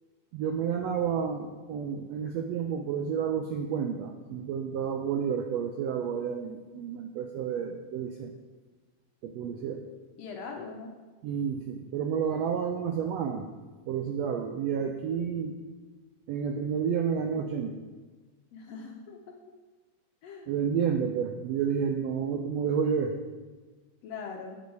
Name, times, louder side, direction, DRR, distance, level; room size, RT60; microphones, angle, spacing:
voice 1, 0.3-8.3 9.2-9.8 11.2-13.5 13.9-15.6 16.3-17.7 20.5-23.1, right 7 dB, 90° right, 4 dB, 1.4 m, -30 dB
voice 2, 10.2-10.9 18.5-19.2 20.2-20.5 24.0-24.6, left 5 dB, 70° left, 1 dB, 1.6 m, -41 dB
8.5 x 8.3 x 4.7 m, 1.3 s
omnidirectional pair, 3.6 m